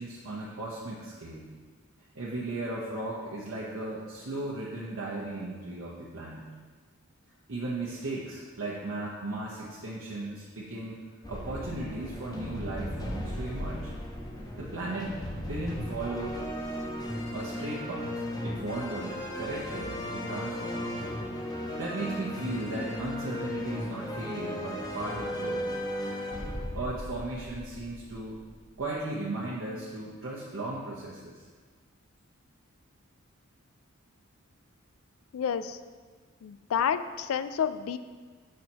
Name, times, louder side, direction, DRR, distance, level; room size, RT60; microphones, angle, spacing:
voice 1, 0.0-1.5 2.1-6.5 7.5-13.9 14.6-15.1 15.4-16.4 17.3-20.9 21.8-25.6 26.7-28.4 28.8-31.4, right 2 dB, 65° right, -6 dB, 0.8 m, -36 dB
sound 1, 11.2-28.9, left 1 dB, 20° left, 0.6 m, -36 dB
voice 2, 35.3-35.8 36.4-38.0, left 8 dB, 70° left, 12 dB, 0.3 m, -29 dB
6.4 x 4.2 x 4.5 m, 1.5 s
head